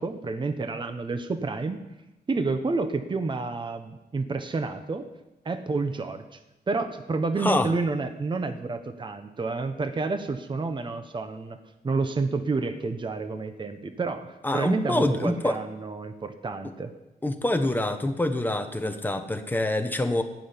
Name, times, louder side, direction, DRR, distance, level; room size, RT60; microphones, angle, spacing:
voice 1, 0.0-1.8 2.3-5.1 5.4-6.4 6.7-11.6 11.8-16.9, right 3 dB, 25° right, 8 dB, 0.9 m, -29 dB
voice 2, 7.4-7.7 14.4-15.6 17.2-20.2, left 1 dB, 10° left, 6 dB, 1.2 m, -26 dB
15.5 x 6.4 x 9.7 m, 0.97 s
wide cardioid pair, 145°, 17 cm